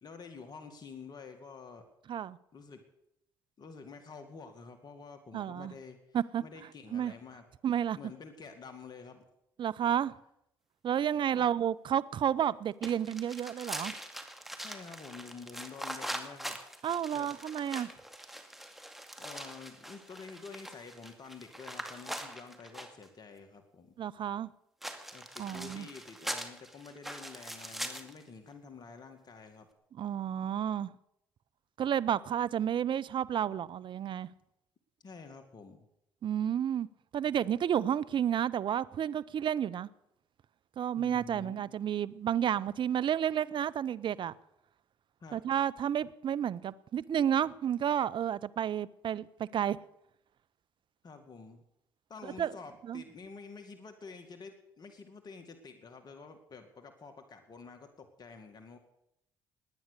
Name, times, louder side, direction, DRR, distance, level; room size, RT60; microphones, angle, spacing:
voice 1, 0.0-1.9 2.5-2.8 3.6-6.0 6.4-7.5 7.9-9.3 11.3-11.5 14.6-16.6 17.1-17.3 19.2-24.0 25.1-29.7 35.0-35.9 41.0-41.6 45.2-45.4 51.0-51.6 52.1-58.8, left 5 dB, 45° left, 2.1 m, -49 dB
voice 2, 5.3-5.7 6.1-6.4 6.9-7.1 7.6-8.0 9.6-10.1 10.8-13.9 16.8-17.9 24.0-24.5 25.4-25.9 29.9-30.9 31.8-34.3 36.2-36.9 37.1-39.9 40.8-44.3 45.3-49.8 52.4-52.5 52.8-53.0, right 9 dB, 50° right, 0.6 m, -31 dB
sound 1, 12.8-23.1 24.8-28.2, right 1 dB, ahead, 2.3 m, -42 dB
19.5 x 9.5 x 6.7 m
hypercardioid pair, 60°, 10 cm